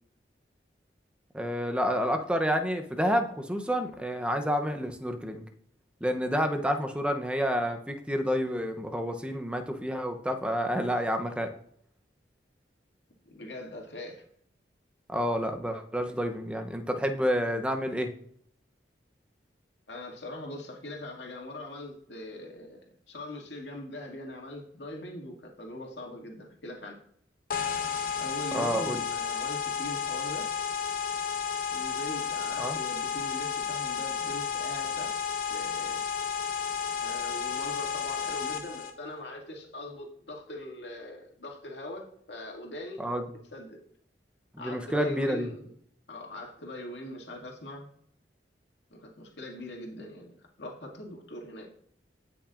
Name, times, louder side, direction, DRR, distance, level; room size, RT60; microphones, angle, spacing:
voice 1, 1.3-5.4 6.0-11.5 15.1-18.1 28.5-29.0 32.6-32.8 43.0-43.2 44.5-45.5, equal, 5° right, 5 dB, 0.7 m, -29 dB
voice 2, 13.2-14.2 19.9-27.0 28.2-30.5 31.7-35.1 35.5-36.0 37.0-43.1 43.5-43.8 44.6-45.7 46.1-47.8 48.9-51.7, left 1 dB, 85° left, 0 dB, 2.1 m, -41 dB
sound 1, 27.5-38.9, left 7 dB, 50° left, 0.8 m, -32 dB
16.5 x 5.9 x 2.5 m, 0.64 s
head